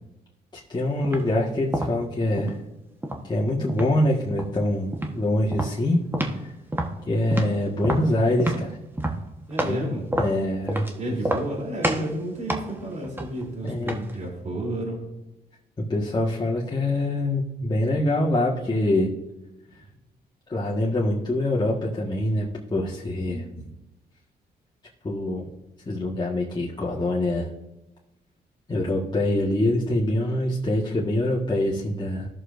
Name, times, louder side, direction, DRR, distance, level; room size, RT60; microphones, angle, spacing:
voice 1, 0.7-2.6 3.2-6.0 7.1-8.8 9.6-10.9 13.6-13.9 15.8-19.1 20.5-23.7 25.0-25.5 25.8-27.5 28.7-32.3, left 1 dB, 25° left, -5 dB, 1.6 m, -24 dB
sound 1, 1.0-1.3 1.7-2.6 3.0-3.9 4.3-4.6 4.9-5.2 5.5-6.5 6.7-9.8 10.1-10.9 11.2-11.6 11.8-12.1 12.5-14.2, right 1 dB, 10° right, 1.3 m, -28 dB
voice 2, 9.5-10.0 11.0-15.0, right 1 dB, 40° right, -1 dB, 3.3 m, -31 dB
16.0 x 6.6 x 2.6 m, 0.96 s
cardioid pair, 80°, 18 cm